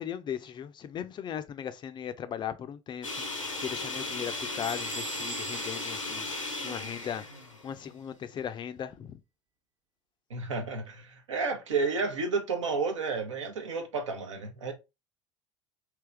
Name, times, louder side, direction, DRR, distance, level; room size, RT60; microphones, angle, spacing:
voice 1, 0.0-6.3 6.6-7.2 7.6-9.2, left 9 dB, 30° left, 0.4 m, -38 dB
sound 1, 3.0-8.2, left 3 dB, 90° left, 0.6 m, -36 dB
Bell / Door, 4.6-7.1, right 6 dB, 35° right, 0.7 m, -45 dB
voice 2, 10.3-14.7, right 4 dB, 75° right, 0.8 m, -31 dB
3.4 x 2.9 x 3.3 m
figure-of-eight pair, 65°, 16 cm